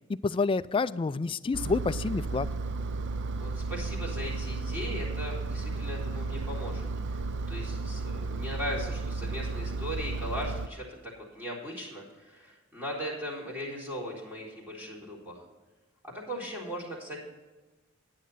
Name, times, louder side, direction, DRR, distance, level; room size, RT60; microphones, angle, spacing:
voice 1, 0.1-2.5, left 4 dB, 25° left, 15 dB, 0.3 m, -28 dB
Engine, 1.5-10.7, right 3 dB, 60° right, 0.5 m, -33 dB
voice 2, 3.4-15.4 16.0-17.2, equal, 10° right, -4 dB, 3.8 m, -38 dB
11.0 x 9.7 x 4.2 m, 1.2 s
head